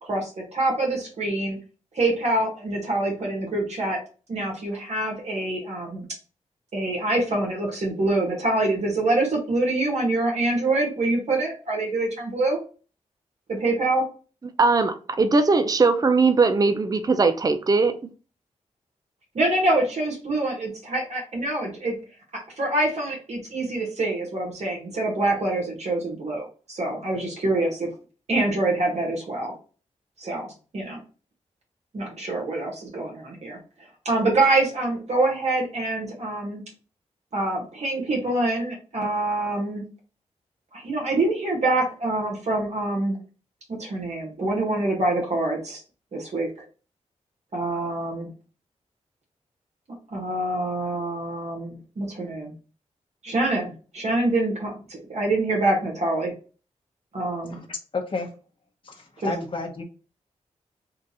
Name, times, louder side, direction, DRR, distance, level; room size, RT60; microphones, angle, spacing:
voice 1, 0.0-1.6 1.9-4.0 4.3-6.1 6.7-12.6 13.5-14.0 19.3-21.9 22.6-27.9 28.3-29.5 30.2-31.0 31.9-33.6 34.0-36.6 37.3-39.8 40.7-43.2 43.7-45.8 46.1-46.6 47.5-48.3 50.1-52.5 53.2-56.3 57.1-57.6 59.2-59.3, right 2 dB, 65° right, 1.5 m, -25 dB
voice 2, 14.6-18.0, right 3 dB, 30° right, 0.5 m, -20 dB
voice 3, 57.4-58.3 58.8-59.8, left 3 dB, 45° left, 0.9 m, -31 dB
3.7 x 2.5 x 4.2 m
cardioid pair, 70°, 12 cm